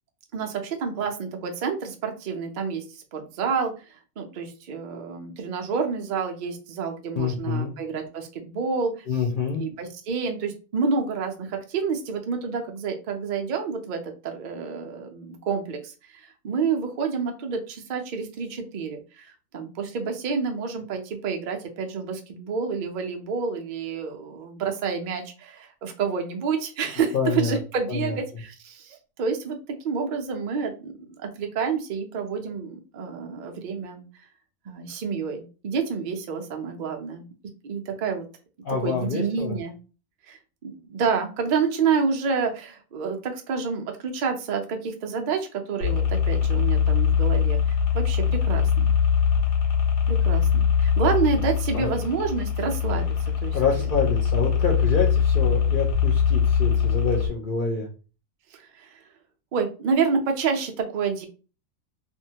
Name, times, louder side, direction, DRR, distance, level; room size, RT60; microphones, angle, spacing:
voice 1, 0.3-3.7 4.2-9.2 9.5-29.6 29.8-34.1 34.7-37.3 37.6-38.3 38.7-39.8 40.3-48.9 50.1-53.2 53.4-53.9 58.5-59.0 59.5-61.3, right 5 dB, 80° right, 4 dB, 0.4 m, -29 dB
voice 2, 7.2-7.7 9.1-9.7 27.1-27.6 27.9-28.1 38.6-39.6 51.7-52.0 53.5-57.9, left 5 dB, 70° left, -1 dB, 0.5 m, -27 dB
sound 1, 45.8-57.3, left 7 dB, 85° left, 1.1 m, -22 dB
2.6 x 2.2 x 2.7 m, 0.35 s
omnidirectional pair, 1.5 m